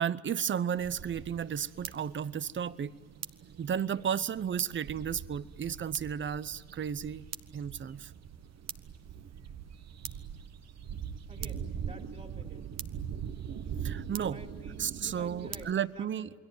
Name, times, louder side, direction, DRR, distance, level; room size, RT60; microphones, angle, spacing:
voice 1, 0.0-3.0 3.6-7.3 7.5-8.1 13.8-14.4 14.8-16.3, right 8 dB, 40° right, 0.8 m, -33 dB
sound 1, 0.8-15.7, right 8 dB, 60° right, 1.3 m, -42 dB
voice 2, 11.3-12.8 14.1-16.3, right 1 dB, 25° right, 2.4 m, -50 dB
28.5 x 22.0 x 9.4 m
cardioid pair, 90°, 30 cm